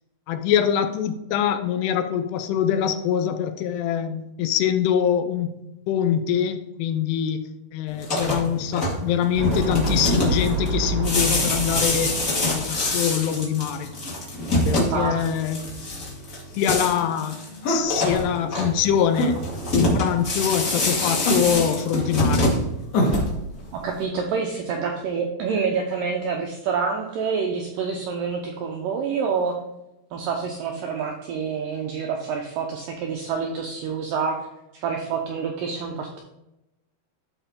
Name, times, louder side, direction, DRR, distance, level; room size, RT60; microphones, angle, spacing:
voice 1, 0.3-7.5 7.7-13.9 14.7-15.6 16.0-16.2 16.6-17.4 17.7-19.4 19.7-22.6, left 9 dB, 80° left, 9 dB, 2.7 m, -24 dB
sound 1, 7.9-23.6, left 1 dB, 35° left, 1.3 m, -26 dB
sound 2, 9.3-13.2, right 2 dB, 55° right, 1.1 m, -28 dB
sound 3, 17.6-17.9 19.1-19.3 21.2-21.7 22.9-23.3, left 1 dB, 50° left, 2.2 m, -23 dB
voice 2, 23.7-29.6 30.1-34.4 34.8-36.2, right 5 dB, 80° right, 2 dB, 1.9 m, -27 dB
13.0 x 4.5 x 3.7 m, 0.90 s
omnidirectional pair, 4.9 m